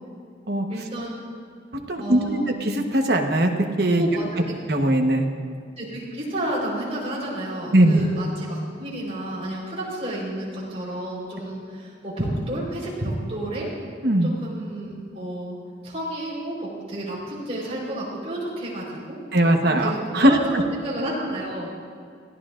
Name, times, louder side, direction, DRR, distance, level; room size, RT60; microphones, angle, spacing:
voice 1, 0.7-1.1 2.0-2.5 4.0-4.5 5.8-13.7 14.2-15.6 15.8-21.7, right 1 dB, 30° right, -5 dB, 4.3 m, -31 dB
voice 2, 1.9-3.5 3.8-4.0 4.7-5.3 7.7-8.0 14.0-14.3 19.3-20.3, right 1 dB, 55° right, 3 dB, 1.2 m, -19 dB
22.5 x 15.0 x 2.5 m, 2.2 s
head